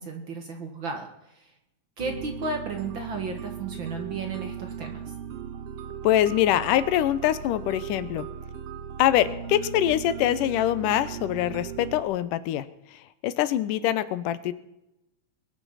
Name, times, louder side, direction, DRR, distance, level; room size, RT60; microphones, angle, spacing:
voice 1, 0.0-1.5 2.0-5.1, right 3 dB, 50° right, 4 dB, 1.7 m, -34 dB
sound 1, 2.0-12.0, right 8 dB, 65° right, 1.6 m, -38 dB
voice 2, 6.0-8.3 9.0-12.7 13.2-14.5, left 12 dB, 90° left, 14 dB, 2.4 m, -24 dB
21.0 x 9.5 x 5.7 m, 0.88 s
omnidirectional pair, 3.7 m